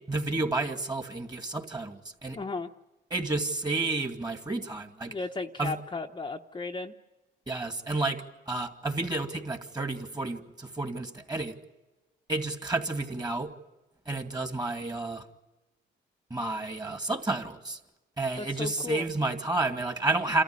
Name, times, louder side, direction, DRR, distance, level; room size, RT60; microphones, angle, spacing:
voice 1, 0.1-2.4 3.1-5.1 5.6-5.7 7.5-11.5 12.3-13.5 14.1-15.2 16.3-17.8 18.2-20.4, right 2 dB, 20° right, 6 dB, 2.3 m, -31 dB
voice 2, 2.3-2.7 5.1-6.9 18.4-19.1, left 3 dB, 25° left, 3 dB, 0.9 m, -35 dB
28.0 x 14.0 x 9.8 m, 1.1 s
cardioid pair, 90°, 20 cm